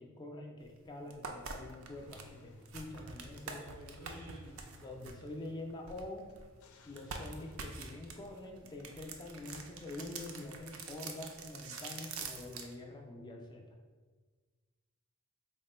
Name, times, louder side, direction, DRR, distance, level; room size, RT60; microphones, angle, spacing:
voice 1, 0.0-3.6 4.8-6.3 6.8-13.8, left 2 dB, 20° left, 2 dB, 0.3 m, -46 dB
sound 1, 0.6-0.7 1.1-6.5 6.9-12.7, right 4 dB, 70° right, 0.4 m, -46 dB
Car / Engine starting / Idling, 1.9-7.6, left 2 dB, 85° left, 0.4 m, -59 dB
voice 2, 3.5-4.6, right 1 dB, 85° right, -1 dB, 0.8 m, -51 dB
3.5 x 2.1 x 4.1 m, 1.4 s
head